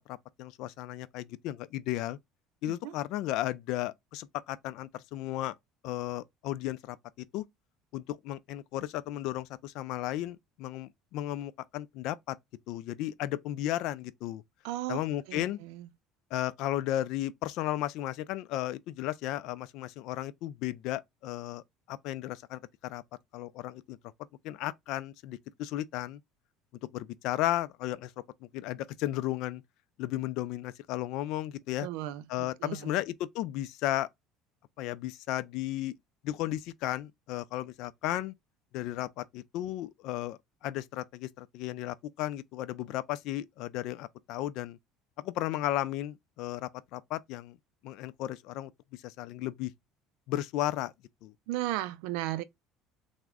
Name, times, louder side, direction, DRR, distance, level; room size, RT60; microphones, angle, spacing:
voice 1, 0.1-2.2 2.6-5.5 5.8-7.0 7.3-7.4 7.9-12.4 12.7-14.4 14.9-15.6 16.3-23.0 23.3-24.0 24.4-26.2 26.9-28.1 28.4-29.6 30.0-31.9 32.3-34.1 34.8-35.9 36.2-38.3 38.7-44.8 45.2-47.6 47.8-49.7 50.3-50.9 51.2-51.3, left 14 dB, 70° left, 0.3 m, -34 dB
voice 2, 14.6-15.0 15.3-15.9 31.8-33.0 51.5-52.4, right 15 dB, 80° right, 0.4 m, -35 dB
3.4 x 2.1 x 3.5 m
supercardioid pair, 100°, 0 cm